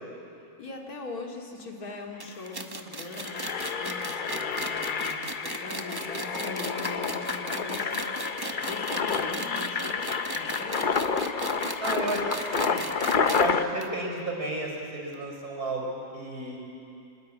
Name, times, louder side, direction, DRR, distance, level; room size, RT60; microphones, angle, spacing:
voice 1, 0.6-8.1 8.5-10.1 10.4-10.9, left 3 dB, 75° left, 1 dB, 2.8 m, -41 dB
Engine, 1.9-2.0 2.2-2.5 2.9-13.6, left 5 dB, 40° left, 0.8 m, -29 dB
sound 1, 2.2-13.5 13.8-13.9 14.2-14.3 15.1-15.2, right 2 dB, 20° right, 0.8 m, -37 dB
voice 2, 11.8-12.9 13.4-16.6, right 2 dB, 80° right, 0 dB, 5.3 m, -32 dB
25.0 x 20.5 x 8.6 m, 2.6 s
omnidirectional pair, 1.6 m